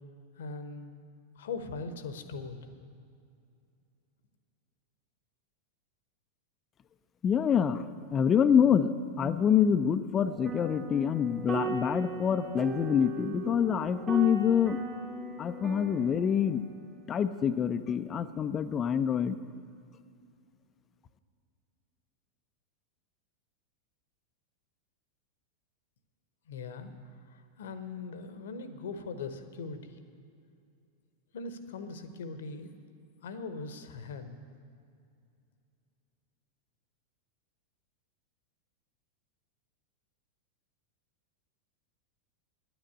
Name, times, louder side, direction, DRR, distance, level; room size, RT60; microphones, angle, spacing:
voice 1, 0.4-0.9 1.4-2.7 26.5-26.9 27.3-30.0 31.3-32.7 33.2-34.3, left 4 dB, 60° left, 10 dB, 0.9 m, -40 dB
voice 2, 7.2-14.8 15.4-16.6 17.1-19.4, left 8 dB, 25° left, 12 dB, 0.4 m, -26 dB
sound 1, 10.2-16.8, right 4 dB, 25° right, 1.2 m, -38 dB
10.0 x 9.0 x 8.5 m, 2.4 s
figure-of-eight pair, 90°, 0 cm